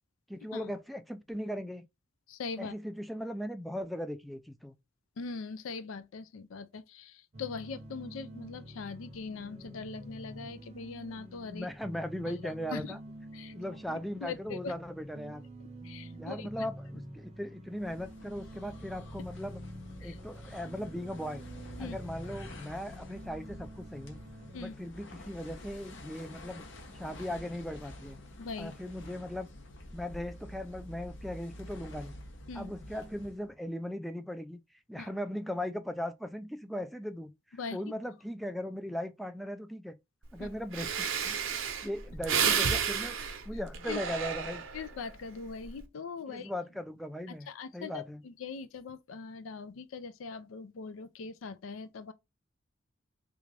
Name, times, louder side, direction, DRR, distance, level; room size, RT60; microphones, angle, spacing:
voice 1, 0.3-1.9 2.6-4.7 11.5-13.0 13.5-15.5 16.1-19.6 20.0-21.4 21.8-24.2 24.6-26.6 26.9-28.2 28.6-29.5 29.9-32.1 32.5-34.6 34.9-40.0 40.3-41.4 41.8-44.6 46.3-47.5 47.7-48.2, equal, ahead, 0.3 m, -38 dB
voice 2, 2.3-2.7 5.2-11.7 12.4-12.9 13.3-13.5 13.9-14.7 15.8-16.7 20.0-20.2 21.8-22.0 24.5-24.7 28.4-28.7 32.5-32.7 35.0-35.1 37.6-37.8 40.4-40.5 43.9-44.0 44.7-46.5 47.3-52.1, left 4 dB, 90° left, 0.4 m, -41 dB
sound 1, 7.3-24.6, equal, 30° right, 0.6 m, -47 dB
sound 2, 17.7-33.5, left 1 dB, 65° left, 0.8 m, -48 dB
Breathing, 40.4-40.5 40.7-45.0 45.5-45.8, right 7 dB, 85° right, 0.7 m, -31 dB
3.5 x 2.5 x 3.1 m
head